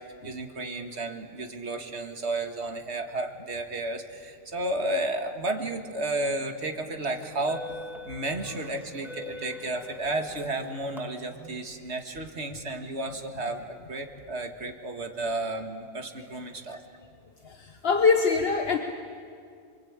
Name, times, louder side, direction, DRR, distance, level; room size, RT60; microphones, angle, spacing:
voice 1, 0.2-7.6 8.1-16.8, right 2 dB, 80° right, 5 dB, 2.1 m, -32 dB
sound 1, 7.2-11.0, left 3 dB, ahead, 1.5 m, -43 dB
voice 2, 17.4-18.8, left 5 dB, 65° left, 4 dB, 1.4 m, -23 dB
26.5 x 23.0 x 8.9 m, 2.3 s
omnidirectional pair, 1.1 m